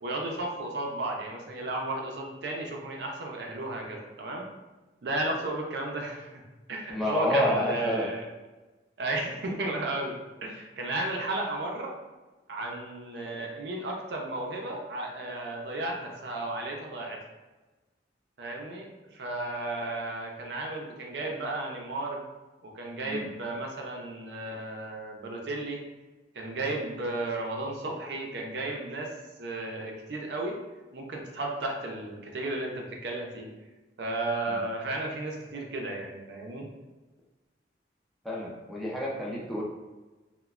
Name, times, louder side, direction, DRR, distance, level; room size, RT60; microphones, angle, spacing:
voice 1, 0.0-4.4 5.0-6.4 6.7-8.3 9.0-11.9 12.5-17.2 18.4-22.2 22.6-25.8 26.3-30.6 30.9-33.5 34.0-36.7, right 2 dB, 65° right, 0 dB, 0.5 m, -34 dB
voice 2, 6.9-8.1 23.0-23.3 34.5-34.6 38.2-39.6, left 1 dB, ahead, -5 dB, 0.4 m, -29 dB
3.0 x 2.1 x 2.3 m, 1.2 s
head